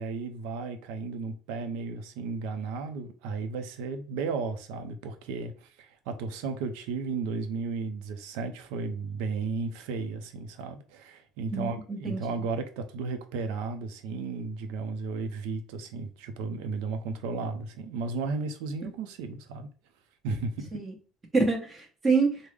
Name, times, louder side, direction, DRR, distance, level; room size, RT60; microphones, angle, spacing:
voice 1, 0.0-19.7 20.2-20.7, right 4 dB, 85° right, 0.5 m, -34 dB
voice 2, 11.5-12.2 20.7-20.9 21.3-22.4, right 4 dB, 20° right, 0.9 m, -26 dB
3.5 x 2.0 x 3.2 m
cardioid pair, 140°, 0 cm